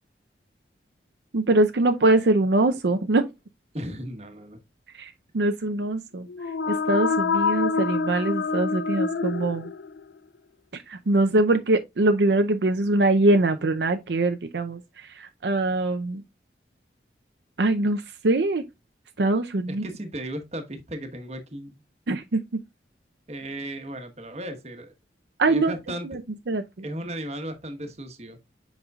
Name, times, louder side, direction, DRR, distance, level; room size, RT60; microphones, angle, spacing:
voice 1, 1.3-3.3 4.9-6.3 6.7-9.7 10.7-16.2 17.6-18.6 19.2-19.8 22.1-22.4 25.4-25.7 26.0-26.2 26.5-26.6, right 2 dB, 75° right, 0.6 m, -23 dB
voice 2, 3.7-4.6 19.7-21.7 23.3-24.9 25.5-26.1 26.8-28.4, right 1 dB, 35° right, 1.2 m, -35 dB
sound 1, 6.3-10.1, left 4 dB, 85° left, 0.4 m, -26 dB
8.0 x 5.3 x 2.3 m
head